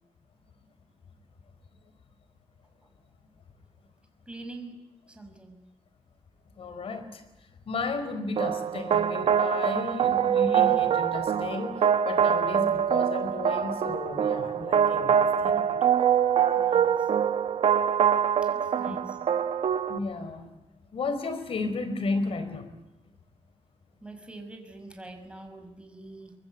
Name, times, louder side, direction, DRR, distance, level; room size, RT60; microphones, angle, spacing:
voice 1, 4.3-4.8 5.1-5.6 16.5-17.3 18.4-19.2 24.0-26.3, right 2 dB, 10° right, 5 dB, 5.6 m, -45 dB
voice 2, 6.6-7.2 7.7-15.9 18.9-19.0 19.9-20.5 20.9-22.7, left 3 dB, 65° left, 10 dB, 4.4 m, -33 dB
sound 1, 8.4-20.0, right 8 dB, 75° right, 1.3 m, -24 dB
23.5 x 23.5 x 8.4 m, 0.99 s
cardioid pair, 105°, 10 cm